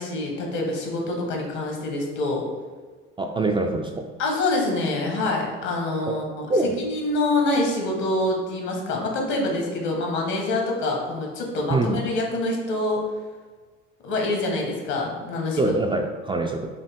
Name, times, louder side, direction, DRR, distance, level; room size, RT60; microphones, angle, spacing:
voice 1, 0.0-2.4 4.2-6.5 6.8-13.0 14.0-15.7, left 2 dB, 65° left, 0 dB, 1.4 m, -26 dB
voice 2, 3.2-4.1 6.1-6.2 6.5-6.8 11.7-12.0 15.6-16.7, right 2 dB, 15° right, 2 dB, 0.3 m, -24 dB
5.6 x 2.2 x 3.5 m, 1.4 s
hypercardioid pair, 70°, 31 cm